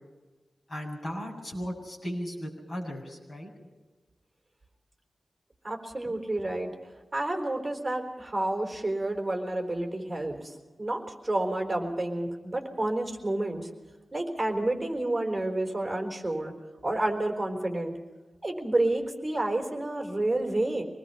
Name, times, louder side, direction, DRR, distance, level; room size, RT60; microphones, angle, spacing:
voice 1, 0.7-3.5, equal, 45° left, -1 dB, 7.1 m, -36 dB
voice 2, 5.6-6.7 7.1-13.7 14.1-16.5 16.8-17.9 18.4-20.8, right 1 dB, 15° right, 2 dB, 4.1 m, -30 dB
26.5 x 20.0 x 5.7 m, 1.3 s
wide cardioid pair, 120°, 0 cm